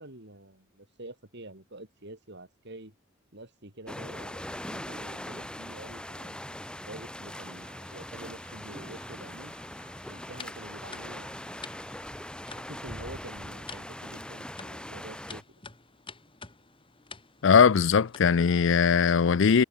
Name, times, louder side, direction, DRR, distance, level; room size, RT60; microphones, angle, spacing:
voice 1, 0.0-2.9 3.3-9.5 10.1-11.6 12.5-15.4, right 1 dB, 55° right, 5.0 m, -47 dB
sound 1, 1.3-4.4 4.9-5.0 5.2-5.4 6.0-6.1 7.3-12.3, right 5 dB, 35° right, 3.4 m, -60 dB
sound 2, 3.9-15.4, left 1 dB, 5° left, 2.1 m, -41 dB
sound 3, 9.8-18.6, left 4 dB, 25° left, 5.9 m, -50 dB
voice 2, 17.4-19.6, left 6 dB, 65° left, 0.5 m, -20 dB
head